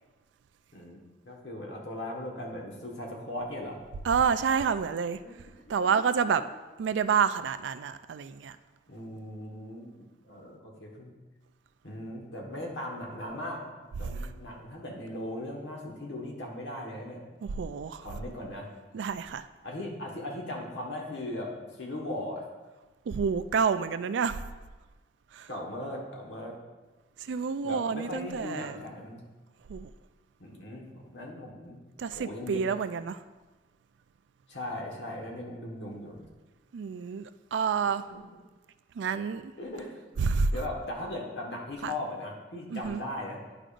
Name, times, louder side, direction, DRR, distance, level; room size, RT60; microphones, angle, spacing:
voice 1, 1.2-3.8 5.2-5.3 5.8-5.9 8.9-11.1 11.8-13.6 14.0-17.2 18.0-18.7 19.6-22.4 25.5-26.5 27.6-29.2 30.4-31.8 32.1-32.6 34.5-36.2 38.1-38.2 39.6-43.4, left 1 dB, 80° left, -1 dB, 1.4 m, -38 dB
voice 2, 4.0-5.2 5.7-6.4 6.8-8.6 14.0-14.1 17.4-18.1 18.9-19.5 23.1-24.4 25.3-25.5 27.2-28.8 29.7-29.9 32.0-33.2 36.7-38.0 39.0-39.5 40.2-40.5 41.8-41.9 42.7-43.0, right 6 dB, 85° right, 12 dB, 0.3 m, -28 dB
11.0 x 5.0 x 2.5 m, 1.2 s
head